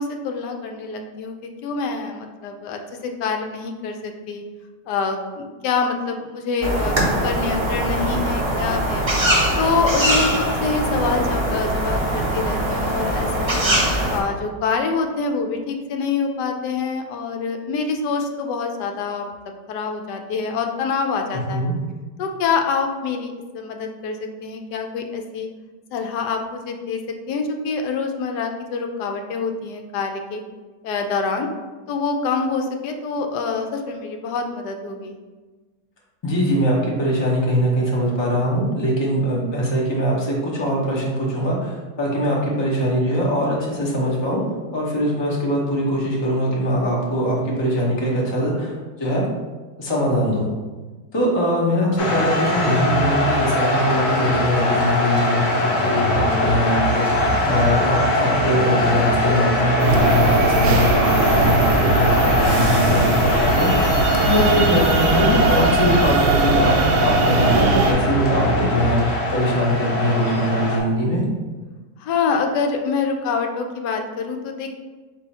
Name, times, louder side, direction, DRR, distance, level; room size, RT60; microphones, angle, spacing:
voice 1, 0.0-1.4 1.6-4.4 4.9-6.9 7.2-13.6 14.1-19.3 19.7-21.6 22.2-25.5 25.9-27.0 27.3-30.4 30.8-31.5 31.9-35.2 72.0-74.7, left 5 dB, 75° left, 4 dB, 1.1 m, -26 dB
sound 1, 6.6-14.2, right 1 dB, 45° right, 0.4 m, -22 dB
voice 2, 36.2-44.4 44.7-49.2 49.8-50.5 51.1-55.4 55.8-71.2, equal, 30° left, -3 dB, 0.5 m, -22 dB
sound 2, 52.0-70.8, left 1 dB, 60° left, 1.0 m, -21 dB
sound 3, 59.8-67.9, right 3 dB, 75° right, 1.1 m, -20 dB
4.6 x 2.7 x 4.1 m, 1.3 s
omnidirectional pair, 1.9 m